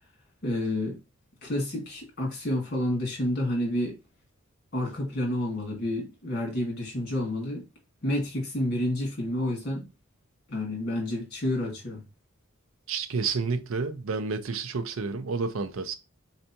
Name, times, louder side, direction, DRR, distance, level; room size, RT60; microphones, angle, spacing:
voice 1, 0.4-1.0 1.4-4.0 4.7-7.6 8.0-9.9 10.5-12.0, left 1 dB, 50° left, 1.8 m, -29 dB
voice 2, 12.9-16.0, right 4 dB, 70° right, 0.5 m, -30 dB
4.1 x 3.4 x 2.8 m
head